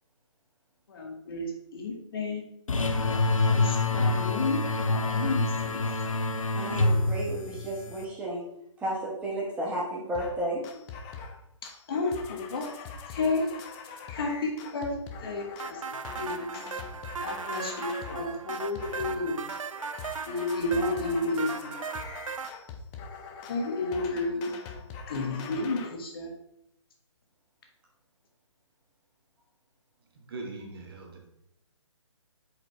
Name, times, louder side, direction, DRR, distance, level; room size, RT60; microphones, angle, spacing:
voice 1, 0.9-2.5 3.5-5.8 11.6-12.7 13.1-13.5 13.8-15.8 16.2-16.5 17.2-19.4 20.3-21.8 23.5-24.5 25.1-26.3, left 2 dB, 45° left, 1 dB, 1.6 m, -31 dB
sound 1, 2.7-8.0, left 2 dB, 90° left, 0.8 m, -26 dB
voice 2, 6.5-8.4 8.8-10.6, right 1 dB, 5° right, -4 dB, 1.3 m, -32 dB
sound 2, 10.1-10.4 10.6-11.4 11.6-18.2 18.5-19.2 19.5-25.9, left 6 dB, 15° left, 0.5 m, -43 dB
sound 3, 15.6-22.5, right 6 dB, 85° right, 0.5 m, -37 dB
voice 3, 30.1-31.3, right 3 dB, 45° right, 1 dB, 1.7 m, -41 dB
7.5 x 5.1 x 3.3 m, 0.80 s
hypercardioid pair, 155°, 17 cm